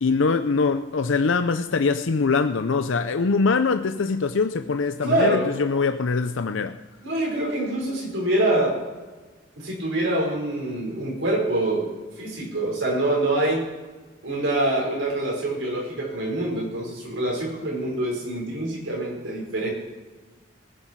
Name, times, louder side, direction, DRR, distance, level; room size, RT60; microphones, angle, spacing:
voice 1, 0.0-6.8, left 4 dB, 85° left, 0.6 m, -23 dB
voice 2, 5.0-5.5 7.0-8.8 9.6-13.6 14.2-19.7, right 1 dB, 85° right, 5.1 m, -25 dB
20.0 x 9.9 x 4.7 m
head